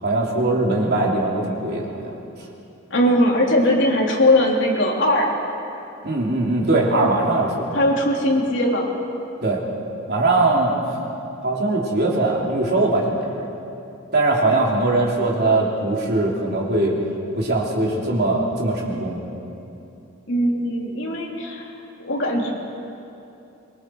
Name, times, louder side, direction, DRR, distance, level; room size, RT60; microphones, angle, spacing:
voice 1, 0.0-2.1 2.4-2.5 6.0-7.8 9.4-9.6 10.1-11.0 11.4-13.3 14.1-16.9 17.3-19.2, right 2 dB, 50° right, -2 dB, 3.1 m, -21 dB
voice 2, 2.9-5.3 7.7-8.9 20.3-22.5, left 1 dB, 60° left, -1 dB, 3.2 m, -20 dB
24.5 x 23.0 x 4.7 m, 2.8 s
head